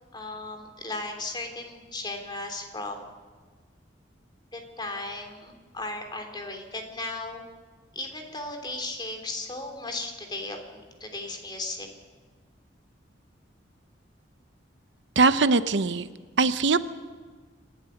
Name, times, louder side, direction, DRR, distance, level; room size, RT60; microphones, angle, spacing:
voice 1, 0.1-3.0 4.5-7.4 7.9-11.9, left 2 dB, 25° left, 4 dB, 3.3 m, -36 dB
voice 2, 15.2-16.1 16.4-16.8, right 3 dB, 70° right, 12 dB, 0.8 m, -21 dB
26.5 x 12.5 x 9.9 m, 1.4 s
head